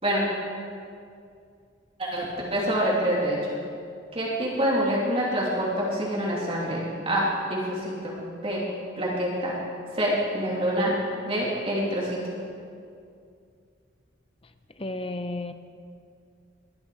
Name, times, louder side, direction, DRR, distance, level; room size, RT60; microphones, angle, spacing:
voice 1, 2.0-3.6 4.1-8.1 8.4-8.6 9.0-9.6 9.9-10.9 11.3-12.2, equal, 30° right, -6 dB, 3.0 m, -26 dB
voice 2, 14.8-15.5, left 2 dB, 30° left, 9 dB, 0.8 m, -32 dB
22.0 x 11.0 x 5.0 m, 2.3 s
head